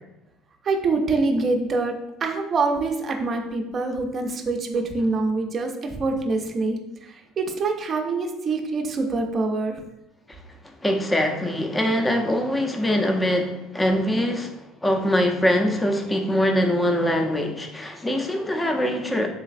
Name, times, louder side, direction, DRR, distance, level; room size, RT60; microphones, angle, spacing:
voice 1, 0.6-9.8, right 3 dB, 40° right, 4 dB, 0.5 m, -25 dB
voice 2, 10.8-19.3, equal, 15° left, 4 dB, 0.5 m, -23 dB
3.9 x 3.1 x 2.4 m, 0.94 s
supercardioid pair, 95°, 0 cm